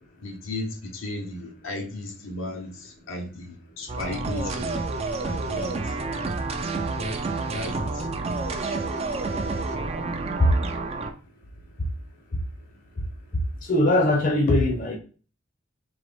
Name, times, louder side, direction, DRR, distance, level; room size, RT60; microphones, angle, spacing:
voice 1, 0.2-4.8 5.2-6.0 7.0-7.2 7.5-8.1 8.4-8.9, left 2 dB, 80° left, 0.9 m, -35 dB
sound 1, 3.9-11.1, right 3 dB, 30° right, 0.4 m, -29 dB
voice 2, 13.3-14.9, left 1 dB, 45° left, 0.7 m, -21 dB
3.8 x 2.9 x 3.4 m
head